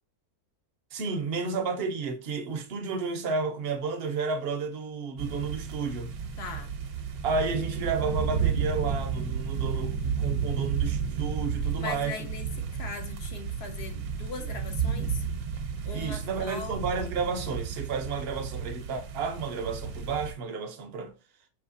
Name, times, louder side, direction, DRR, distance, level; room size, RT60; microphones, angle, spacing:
voice 1, 0.9-6.1 7.2-12.2 15.9-21.1, right 4 dB, 55° right, 0.7 m, -31 dB
sound 1, 5.2-20.3, right 6 dB, 75° right, 1.1 m, -32 dB
voice 2, 6.4-6.7 11.7-15.2 15.9-16.7, left 5 dB, 60° left, 0.7 m, -39 dB
5.6 x 3.1 x 2.5 m
omnidirectional pair, 1.6 m